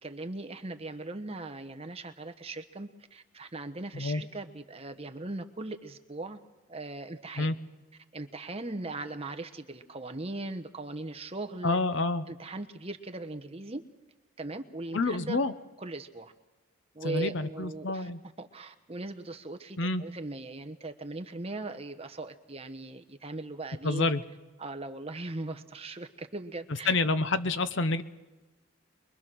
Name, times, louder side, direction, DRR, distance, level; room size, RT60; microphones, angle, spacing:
voice 1, 0.0-6.4 6.7-7.5 8.1-11.8 12.3-13.8 14.4-15.4 15.8-16.3 16.9-18.1 18.4-24.1 24.6-26.9, right 2 dB, 25° right, 8 dB, 1.0 m, -39 dB
voice 2, 11.6-12.3 14.9-15.5 17.0-18.2 19.8-20.0 23.8-24.2 26.9-28.0, left 3 dB, 55° left, 12 dB, 0.9 m, -28 dB
24.0 x 22.5 x 6.2 m, 1.1 s
head